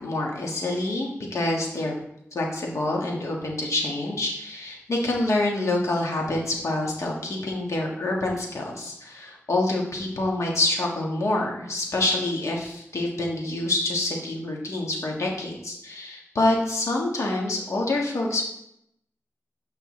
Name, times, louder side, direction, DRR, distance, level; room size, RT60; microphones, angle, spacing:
voice 1, 0.0-1.9 2.3-18.4, left 2 dB, 85° left, -1 dB, 1.5 m, -26 dB
7.7 x 5.6 x 3.2 m, 0.76 s
wide cardioid pair, 60°, 5 cm